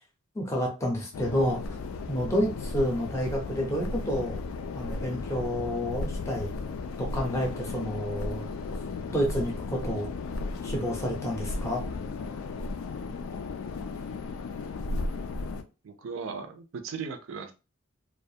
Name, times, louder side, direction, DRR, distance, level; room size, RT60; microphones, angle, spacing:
voice 1, 0.3-1.8 2.1-4.4 4.7-6.5 7.0-8.5 9.1-10.1 10.6-11.8, equal, 15° left, 0 dB, 0.5 m, -29 dB
sound 1, 1.1-15.6, left 3 dB, 70° left, 0.3 m, -35 dB
voice 2, 15.8-17.5, right 5 dB, 65° right, 6 dB, 0.4 m, -37 dB
2.4 x 2.2 x 2.6 m, 0.30 s
head